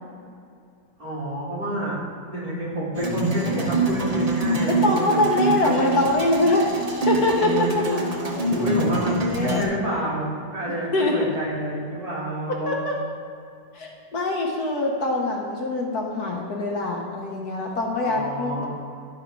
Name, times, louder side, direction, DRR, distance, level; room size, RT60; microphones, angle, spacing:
voice 1, 1.0-2.0 2.3-5.2 5.6-5.8 8.6-12.8 18.0-18.7, right 1 dB, 50° right, -7 dB, 2.9 m, -29 dB
sound 1, 2.9-9.6, right 2 dB, 30° right, 0.7 m, -25 dB
voice 2, 4.7-8.0 9.2-9.8 10.7-11.3 12.6-12.9 13.7-18.7, left 2 dB, 60° left, 0 dB, 1.4 m, -24 dB
11.0 x 5.6 x 4.6 m, 2.4 s
omnidirectional pair, 2.0 m